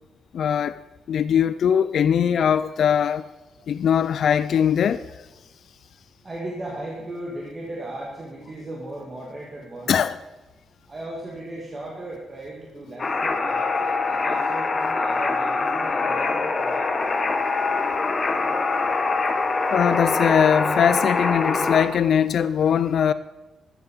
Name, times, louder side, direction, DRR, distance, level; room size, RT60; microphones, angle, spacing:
voice 1, 0.3-0.8 1.1-3.3 3.7-5.3 9.9-10.2 17.4-18.5 19.7-23.1, left 8 dB, 55° left, 0.4 m, -21 dB
voice 2, 6.2-10.0 10.8-17.1, right 1 dB, 20° right, 1.9 m, -37 dB
sound 1, 13.0-21.9, left 3 dB, 25° left, 1.0 m, -24 dB
12.5 x 8.1 x 6.8 m
cardioid pair, 170°, 0 cm